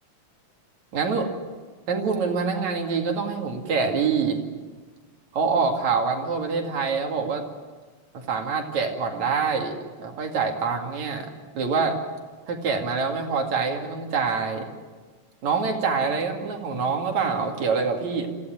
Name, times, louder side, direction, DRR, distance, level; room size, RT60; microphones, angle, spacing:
voice 1, 0.9-1.3 1.9-4.4 5.3-7.4 8.1-11.3 11.6-12.0 12.5-14.7 15.4-18.3, right 5 dB, 65° right, 2 dB, 3.6 m, -25 dB
25.5 x 15.5 x 9.0 m, 1.4 s
omnidirectional pair, 3.4 m